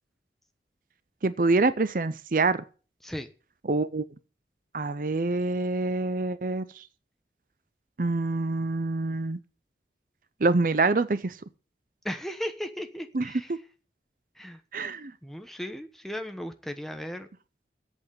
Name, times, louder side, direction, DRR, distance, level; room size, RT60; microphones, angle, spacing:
voice 1, 1.2-2.6 3.7-4.0 4.7-6.8 8.0-9.4 10.4-11.3 13.1-13.6 14.7-15.1, right 3 dB, 50° right, 0.6 m, -26 dB
voice 2, 12.0-13.6 14.4-14.6 15.2-17.3, equal, ahead, 1.0 m, -36 dB
8.3 x 8.0 x 8.5 m
head